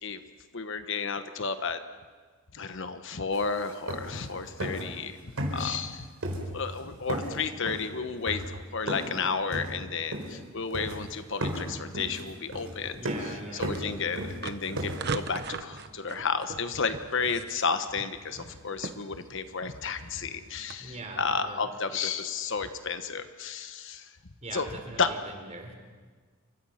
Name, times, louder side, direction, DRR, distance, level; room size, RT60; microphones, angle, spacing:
voice 1, 0.5-1.8 2.5-5.2 5.5-6.1 6.5-24.1 24.5-24.7 25.0-25.1, left 5 dB, 55° left, 9 dB, 1.2 m, -32 dB
sound 1, 3.3-3.4 3.7-4.3 4.6-5.0 5.4-5.9 6.2-6.8 7.1-9.2 9.5-10.5 10.7-11.1 11.4-15.4, right 1 dB, 75° right, 4.5 m, -35 dB
voice 2, 12.9-13.7 20.8-21.7 24.4-25.7, right 2 dB, 30° right, 4 dB, 4.0 m, -42 dB
sound 2, 12.9-20.8, right 4 dB, 50° right, 1.1 m, -41 dB
28.5 x 24.0 x 5.9 m, 1.5 s
head